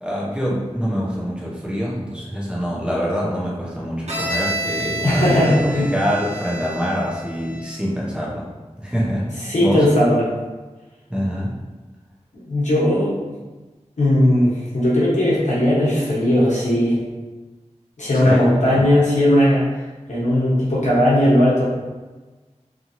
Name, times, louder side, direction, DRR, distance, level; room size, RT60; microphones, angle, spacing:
voice 1, 0.0-8.5 8.8-9.9 11.1-11.6 18.2-18.8, equal, 10° right, -6 dB, 0.7 m, -25 dB
Bowed string instrument, 4.1-7.8, right 1 dB, 65° right, 0.7 m, -29 dB
voice 2, 5.0-5.9 9.4-10.2 12.3-13.1 14.0-17.0 18.0-19.7 20.1-21.6, left 1 dB, 75° left, -7 dB, 1.0 m, -17 dB
2.9 x 2.6 x 2.6 m, 1.2 s
wide cardioid pair, 60°, 12 cm